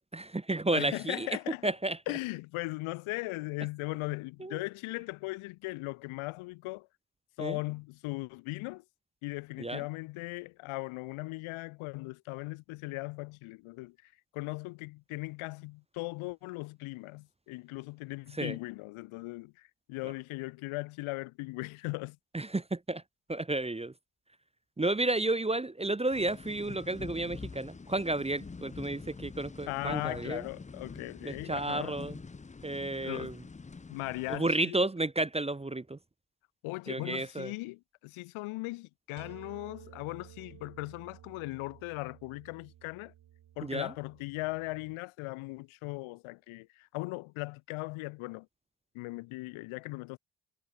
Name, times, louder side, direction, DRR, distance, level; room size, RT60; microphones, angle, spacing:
voice 1, 0.0-1.3 1.6-2.0 4.4-4.6 7.4-7.6 9.6-9.8 18.3-18.6 22.3-23.0 23.3-23.9 24.8-30.4 31.2-32.2 32.6-33.4 34.3-36.0 36.9-37.5 43.6-43.9, right 2 dB, 10° right, 0.9 m, -32 dB
voice 2, 0.7-1.7 2.1-6.9 7.4-8.8 9.2-22.2 29.7-32.0 33.0-33.3 33.9-34.8 36.6-43.1 43.6-48.5 48.9-50.2, left 23 dB, 75° left, 1.4 m, -38 dB
sound 1, 26.1-34.4, left 4 dB, 15° left, 0.7 m, -46 dB
sound 2, 39.2-45.0, right 12 dB, 50° right, 1.1 m, -54 dB
hypercardioid pair, 45°, 49 cm